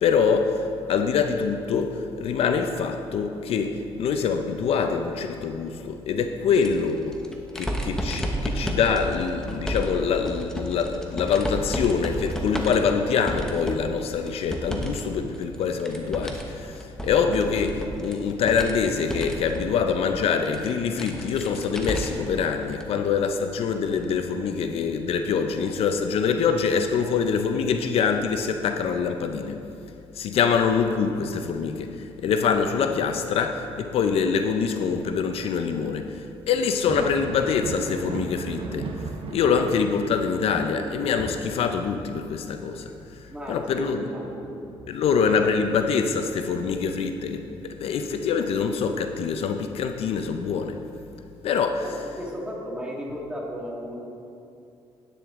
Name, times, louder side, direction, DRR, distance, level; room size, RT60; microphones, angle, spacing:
voice 1, 0.0-7.2 7.6-29.6 30.2-31.9 32.2-36.2 36.5-38.9 39.3-42.8 43.5-44.0 44.9-50.8 51.4-51.9, left 6 dB, 65° left, 6 dB, 0.6 m, -25 dB
sound 1, 6.5-15.0 15.3-22.3 22.7-22.8 24.0-24.1, equal, 5° left, 1.1 m, -32 dB
Thunder, 36.7-46.0 46.4-47.6 49.2-49.3 50.1-50.2, right 4 dB, 55° right, 0.8 m, -38 dB
voice 2, 43.3-44.6 51.8-54.0, equal, 10° right, -3 dB, 1.9 m, -35 dB
10.0 x 9.5 x 3.7 m, 2.6 s
cardioid pair, 110°, 11 cm